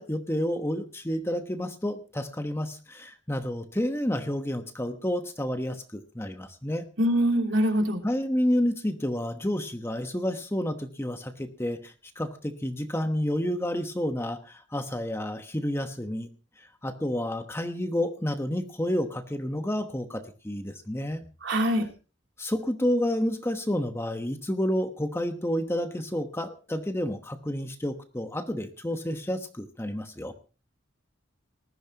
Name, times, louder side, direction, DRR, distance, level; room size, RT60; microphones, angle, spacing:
voice 1, 0.0-6.8 8.0-16.3 16.6-21.2 22.4-30.3, equal, 10° left, 7 dB, 1.1 m, -30 dB
voice 2, 7.0-8.0 21.4-21.9, equal, 65° right, 2 dB, 3.1 m, -23 dB
19.5 x 14.5 x 2.9 m, 0.34 s
head